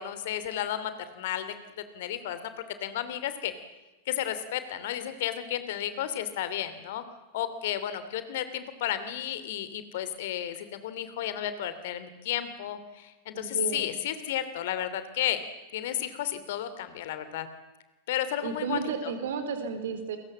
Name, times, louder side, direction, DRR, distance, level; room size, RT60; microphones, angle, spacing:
voice 1, 0.0-1.5 1.9-2.5 2.8-3.5 4.1-7.0 7.3-15.4 15.7-17.5 18.1-19.1, left 11 dB, 55° left, 12 dB, 2.8 m, -32 dB
voice 2, 13.3-13.9 18.4-20.2, right 6 dB, 60° right, 9 dB, 4.4 m, -32 dB
29.5 x 22.5 x 7.6 m, 1.1 s
figure-of-eight pair, 90°, 0 cm